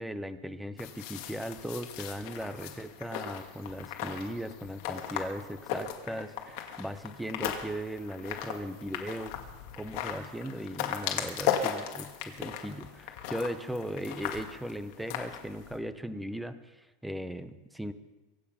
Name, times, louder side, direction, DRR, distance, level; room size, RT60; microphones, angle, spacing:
voice 1, 0.0-9.3 9.7-17.9, equal, ahead, 12 dB, 0.7 m, -38 dB
sound 1, 0.8-15.8, left 9 dB, 50° left, 2.0 m, -37 dB
24.0 x 9.0 x 5.8 m, 1.1 s
supercardioid pair, 165°, 0 cm